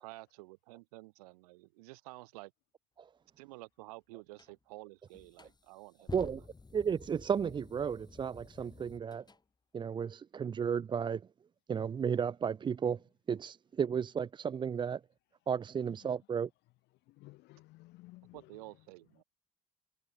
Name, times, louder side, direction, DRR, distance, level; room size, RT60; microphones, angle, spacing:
voice 1, 0.0-2.5 3.4-6.2 18.3-19.2, right 23 dB, 70° right, 5.7 m, -51 dB
sound 1, 4.4-4.5 5.1-9.4, left 3 dB, 20° left, 3.2 m, -51 dB
voice 2, 6.1-6.4 6.7-9.2 9.7-11.2 11.7-13.0 13.3-15.0 15.5-16.5, right 7 dB, 25° right, 0.4 m, -33 dB
voice 3, 17.1-18.6, left 19 dB, 60° left, 3.6 m, -55 dB
figure-of-eight pair, 50°, 20 cm